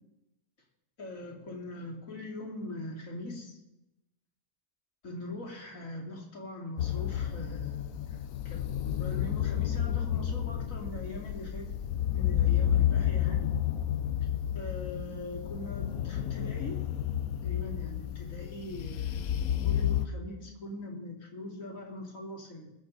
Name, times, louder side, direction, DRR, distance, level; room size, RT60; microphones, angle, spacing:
voice 1, 1.0-3.6 5.0-11.7 12.1-13.5 14.5-16.7 17.4-19.4 19.6-22.7, left 1 dB, 60° left, -2 dB, 3.2 m, -41 dB
sound 1, 6.8-20.1, left 11 dB, 75° left, 1.1 m, -31 dB
21.5 x 7.9 x 4.1 m, 0.92 s
omnidirectional pair, 1.6 m